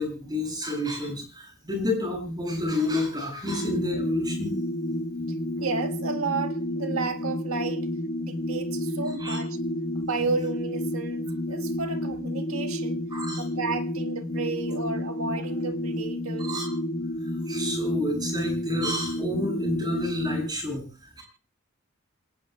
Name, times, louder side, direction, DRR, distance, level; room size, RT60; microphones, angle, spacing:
voice 1, 0.0-4.5 9.2-9.4 13.1-13.4 16.4-16.7 17.5-20.8 21.2-21.3, left 1 dB, 20° right, 7.9 m, -29 dB
sound 1, 3.5-20.5, left 1 dB, 55° left, 1.9 m, -30 dB
voice 2, 5.6-7.9 8.2-9.6 10.0-13.0 13.4-16.7, right 4 dB, 80° right, 1.8 m, -32 dB
27.5 x 17.5 x 2.4 m
head